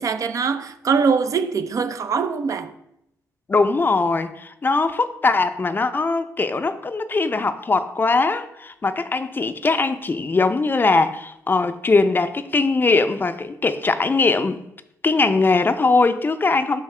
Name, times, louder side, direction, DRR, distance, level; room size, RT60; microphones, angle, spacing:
voice 1, 0.0-2.7, right 5 dB, 55° right, 0.5 m, -22 dB
voice 2, 3.5-14.6 15.0-16.8, left 3 dB, 30° left, 0.5 m, -20 dB
7.2 x 5.6 x 3.3 m
cardioid pair, 65°, 7 cm